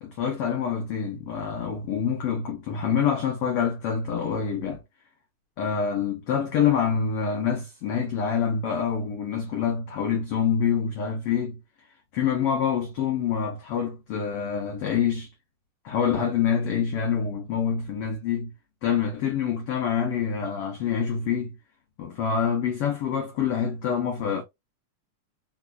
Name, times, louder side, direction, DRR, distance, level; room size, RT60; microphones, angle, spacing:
voice 1, 0.0-4.8 5.6-11.6 12.1-15.3 15.8-18.5 18.8-21.6 22.0-24.4, left 7 dB, 85° left, 1.3 m, -26 dB
4.8 x 2.3 x 2.2 m
omnidirectional pair, 3.6 m